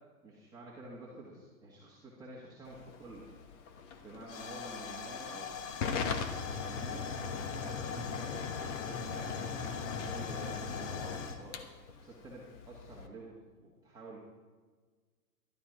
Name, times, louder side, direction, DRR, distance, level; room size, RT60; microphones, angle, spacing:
voice 1, 0.2-3.3 4.0-5.7 6.4-8.4 8.7-14.2, right 2 dB, 10° right, -6 dB, 1.6 m, -49 dB
Hiss / Fire / Tick, 2.7-13.1, left 6 dB, 45° left, 1.3 m, -38 dB
12.5 x 12.0 x 4.9 m, 1.4 s
hypercardioid pair, 135°, 49 cm